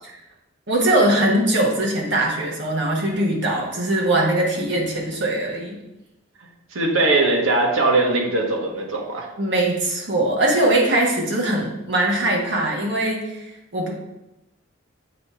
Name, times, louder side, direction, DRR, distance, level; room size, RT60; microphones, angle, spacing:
voice 1, 0.7-5.8 9.4-13.9, right 1 dB, 60° right, -2 dB, 1.4 m, -21 dB
voice 2, 6.7-9.3, right 2 dB, 90° right, 0 dB, 1.2 m, -20 dB
7.4 x 2.9 x 4.8 m, 0.97 s
head